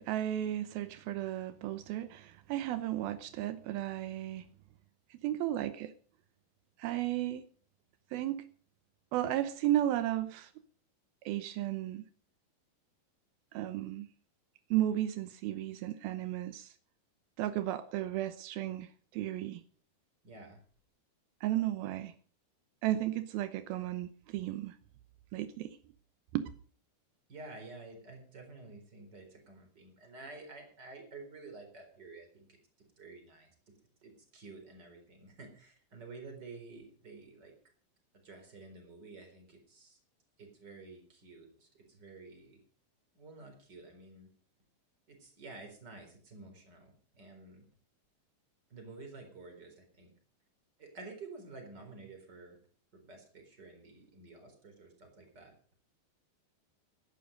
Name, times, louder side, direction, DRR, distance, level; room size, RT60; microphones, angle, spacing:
voice 1, 0.0-4.4 5.2-5.9 6.8-7.4 8.1-8.5 9.1-10.5 11.3-12.0 13.5-14.1 14.7-16.7 17.4-19.6 21.4-22.1 22.8-24.8 25.3-25.8 26.3-26.5, right 13 dB, 85° right, 2.1 m, -34 dB
voice 2, 20.2-20.6 27.3-32.5 33.0-33.5 34.0-37.5 38.2-40.0 40.4-42.6 43.1-44.3 45.1-47.6 48.7-50.1 50.8-52.6 52.9-55.5, right 3 dB, 25° right, 4.1 m, -51 dB
16.5 x 11.5 x 5.2 m
omnidirectional pair, 5.4 m